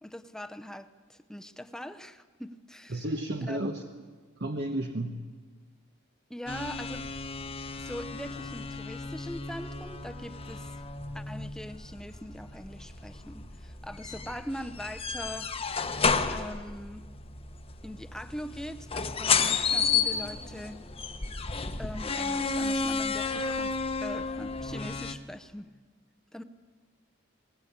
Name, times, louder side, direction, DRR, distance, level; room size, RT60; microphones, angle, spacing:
voice 1, 0.0-3.0 3.5-3.6 6.3-7.1 7.8-10.7 11.1-15.5 16.3-17.1 17.8-20.8 21.8-23.7 24.0-25.7 26.3-26.4, equal, 5° left, 10 dB, 0.7 m, -41 dB
voice 2, 2.9-4.0 4.4-5.2, right 1 dB, 55° right, 4 dB, 1.1 m, -32 dB
sound 1, 6.5-25.1, left 5 dB, 30° left, 1.0 m, -32 dB
21.0 x 19.5 x 8.6 m, 1.5 s
head